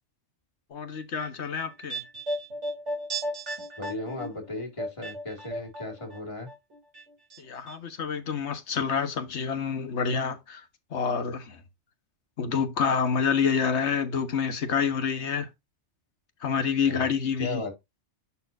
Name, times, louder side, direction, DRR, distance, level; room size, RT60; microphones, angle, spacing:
voice 1, 0.7-2.0 7.4-10.6 10.9-11.6 12.4-15.5 16.4-17.6, left 6 dB, 75° left, 1.5 m, -27 dB
sound 1, 0.9-6.2 6.5-7.4 7.7-7.8, right 1 dB, 85° right, 3.1 m, -35 dB
voice 2, 3.8-6.5 16.9-17.1 17.4-17.7, left 2 dB, 25° left, 2.3 m, -36 dB
11.0 x 4.2 x 2.6 m
omnidirectional pair, 1.2 m